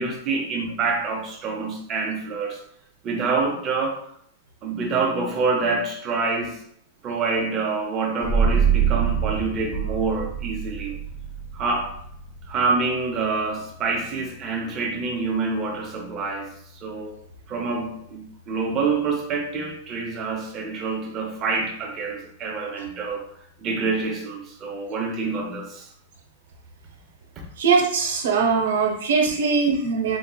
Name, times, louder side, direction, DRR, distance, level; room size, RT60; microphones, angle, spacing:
voice 1, 0.0-2.6 3.0-4.0 4.6-6.6 7.0-10.9 11.5-11.9 12.5-16.5 16.8-17.1 17.5-23.2 23.6-25.9 27.4-27.5, right 4 dB, 25° right, 1 dB, 0.6 m, -26 dB
sound 1, 8.2-19.5, right 7 dB, 20° left, 0.6 m, -28 dB
voice 2, 27.6-30.2, right 5 dB, 85° right, 1 dB, 0.6 m, -21 dB
3.8 x 2.9 x 2.2 m, 0.69 s
supercardioid pair, 170°, 0 cm